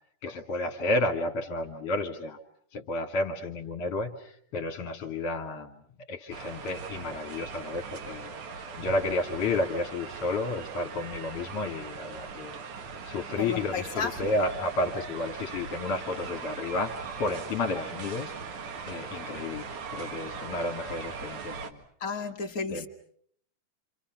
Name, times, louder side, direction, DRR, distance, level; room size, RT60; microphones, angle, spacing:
voice 1, 0.2-2.4 2.7-5.8 6.1-12.6 13.0-18.3 18.9-21.8 22.7-22.9, left 2 dB, 50° left, 2.6 m, -31 dB
sound 1, 6.3-21.7, right 5 dB, 70° right, 3.3 m, -40 dB
voice 2, 13.4-14.3 22.0-22.9, left 5 dB, 35° left, 1.7 m, -33 dB
29.5 x 27.5 x 5.9 m
omnidirectional pair, 3.6 m